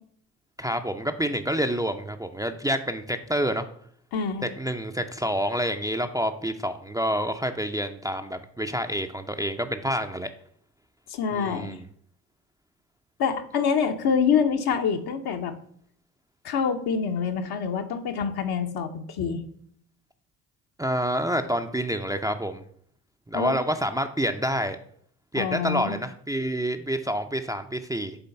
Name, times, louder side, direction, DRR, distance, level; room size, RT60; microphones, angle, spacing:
voice 1, 0.6-3.7 4.6-10.3 11.3-11.8 20.8-22.6 23.3-24.8 25.3-28.2, equal, 10° right, 6 dB, 0.5 m, -28 dB
voice 2, 4.1-4.5 11.1-11.8 13.2-15.5 16.4-19.4 23.3-23.6 25.3-26.0, left 6 dB, 55° left, 6 dB, 1.0 m, -26 dB
7.0 x 3.8 x 5.4 m, 0.63 s
hypercardioid pair, 45°, 45 cm